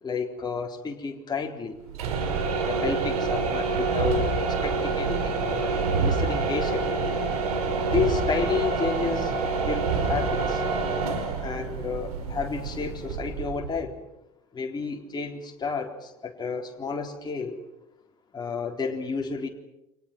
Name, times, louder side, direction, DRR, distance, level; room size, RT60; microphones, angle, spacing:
voice 1, 0.0-1.8 2.3-7.0 7.9-10.6 11.4-14.0 14.5-17.6 18.3-19.5, left 5 dB, 20° left, 1 dB, 3.8 m, -31 dB
sound 1, 1.9-13.8, right 4 dB, 65° right, 4.6 m, -27 dB
29.5 x 25.0 x 6.1 m, 0.89 s
figure-of-eight pair, 70°, 20 cm